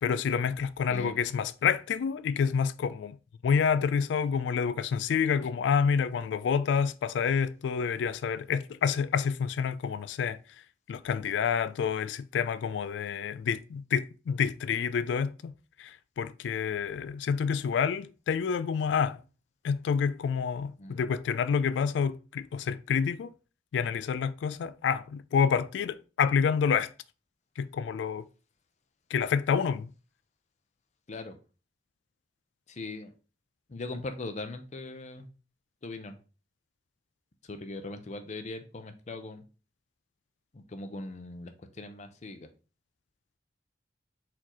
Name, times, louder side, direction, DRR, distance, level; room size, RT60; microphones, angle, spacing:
voice 1, 0.0-3.2 3.4-10.4 10.9-15.5 15.8-19.2 19.6-23.3 23.7-26.9 27.6-28.3 29.1-29.9, left 6 dB, 80° left, 0.3 m, -28 dB
voice 2, 32.8-33.1 33.7-35.3 35.8-36.1 37.5-39.4 40.5-42.4, left 2 dB, 40° left, 0.6 m, -40 dB
4.3 x 4.0 x 3.0 m
head